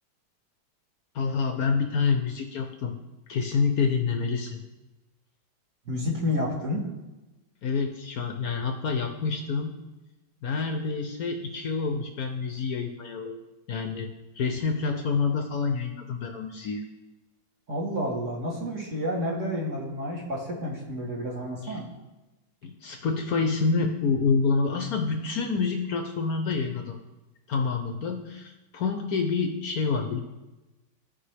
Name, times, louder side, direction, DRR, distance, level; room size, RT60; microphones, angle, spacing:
voice 1, 1.1-2.9 3.3-4.6 7.6-9.8 10.4-13.4 13.7-14.1 14.3-16.8 21.6-21.8 22.6-27.0 27.5-30.2, left 4 dB, 70° left, 5 dB, 0.9 m, -27 dB
voice 2, 5.9-6.8 17.7-21.9, left 1 dB, 40° right, -3 dB, 1.9 m, -30 dB
15.5 x 5.5 x 3.4 m, 1.1 s
omnidirectional pair, 2.2 m